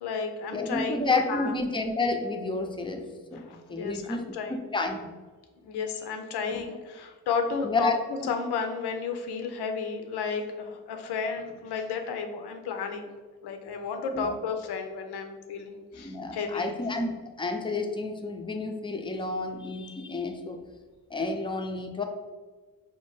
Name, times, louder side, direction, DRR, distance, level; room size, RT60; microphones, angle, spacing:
voice 1, 0.0-1.5 3.3-4.7 5.6-7.9 8.3-13.1 13.4-16.7, left 5 dB, 70° left, 5 dB, 0.6 m, -32 dB
voice 2, 0.5-4.2 4.5-5.0 6.5-6.6 7.6-7.9 14.1-14.3 15.9-17.1 17.4-20.6 21.1-22.0, left 3 dB, 10° left, 4 dB, 0.5 m, -30 dB
4.3 x 2.1 x 3.1 m, 1.4 s
supercardioid pair, 40°, 41 cm